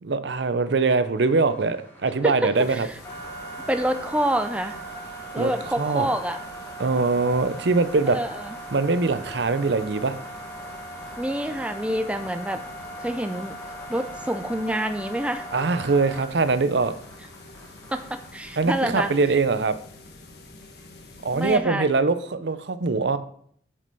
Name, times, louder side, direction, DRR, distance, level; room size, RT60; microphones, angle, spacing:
voice 1, 0.0-2.9 5.4-5.5 5.8-6.1 6.8-8.2 8.7-10.1 15.5-16.9 18.6-19.8 21.2-23.2, right 3 dB, 70° right, 12 dB, 0.6 m, -22 dB
sound 1, 1.2-18.7, right 1 dB, 10° left, 1.7 m, -40 dB
voice 2, 2.2-2.9 3.7-4.8 5.3-6.4 8.1-8.5 11.2-12.6 13.0-13.6 13.9-15.5 17.9-19.1 21.3-21.8, right 1 dB, 5° right, 7 dB, 0.5 m, -27 dB
sound 2, 2.5-21.6, left 2 dB, 60° left, 1.3 m, -47 dB
8.4 x 5.4 x 5.4 m, 0.62 s
head